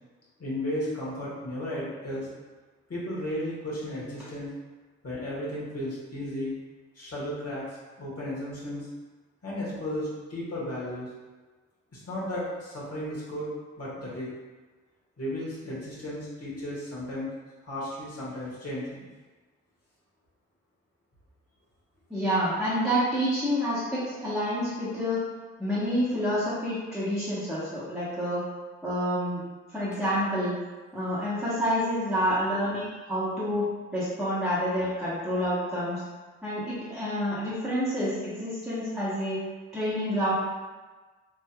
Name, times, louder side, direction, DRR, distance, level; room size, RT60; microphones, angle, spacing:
voice 1, 0.4-2.3 2.9-4.5 5.0-6.5 6.9-8.9 9.4-11.1 11.9-13.5 13.8-14.3 15.2-17.3 17.6-19.0, left 1 dB, 50° left, -8 dB, 1.4 m, -34 dB
voice 2, 22.1-25.2 25.6-28.4 28.8-29.4 29.7-30.5 30.9-33.7 33.9-36.0 36.4-39.4 39.7-40.3, equal, ahead, -12 dB, 1.3 m, -28 dB
3.4 x 2.6 x 2.2 m, 1.3 s
hypercardioid pair, 40°, 32 cm